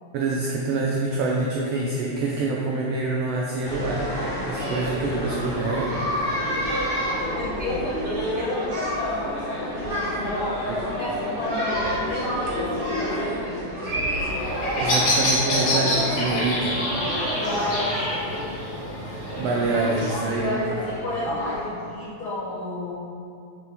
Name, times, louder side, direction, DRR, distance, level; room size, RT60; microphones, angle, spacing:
voice 1, 0.1-4.1 4.4-5.9 14.7-16.8 19.0-20.6, right 3 dB, 80° right, -2 dB, 1.4 m, -26 dB
sound 1, 3.6-21.5, equal, 55° right, 0.6 m, -29 dB
voice 2, 7.1-10.6 11.0-13.9 17.4-18.1 19.8-22.9, left 1 dB, 85° left, -8 dB, 0.8 m, -31 dB
Bird vocalization bird call bird song, 14.3-20.3, left 1 dB, 55° left, 2.6 m, -27 dB
6.9 x 5.9 x 3.5 m, 2.4 s
omnidirectional pair, 3.4 m